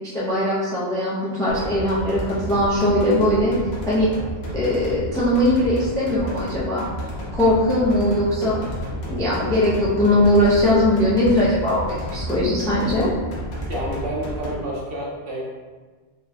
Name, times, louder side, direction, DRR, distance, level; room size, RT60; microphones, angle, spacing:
voice 1, 0.0-3.5 3.9-4.1 4.5-6.8 7.3-8.6 9.1-13.1, left 1 dB, 5° left, -7 dB, 0.5 m, -20 dB
sound 1, 1.5-14.5, equal, 65° left, 1.1 m, -31 dB
voice 2, 13.7-15.5, right 1 dB, 60° right, -4 dB, 0.9 m, -29 dB
4.2 x 2.2 x 2.8 m, 1.4 s
omnidirectional pair, 1.2 m